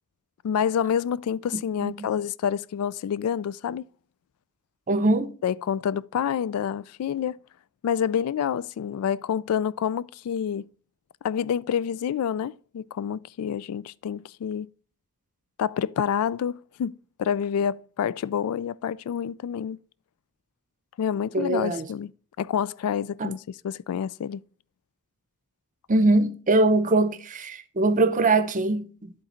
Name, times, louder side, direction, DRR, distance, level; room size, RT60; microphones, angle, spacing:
voice 1, 0.4-3.8 5.4-7.4 7.8-10.7 11.2-14.7 15.6-19.8 21.0-22.1 22.4-23.4 23.6-24.4, left 8 dB, 80° left, 0.3 m, -28 dB
voice 2, 4.9-5.3 21.3-21.9 23.2-23.3 25.9-29.1, right 2 dB, 35° right, 0.7 m, -22 dB
11.0 x 3.9 x 4.3 m
head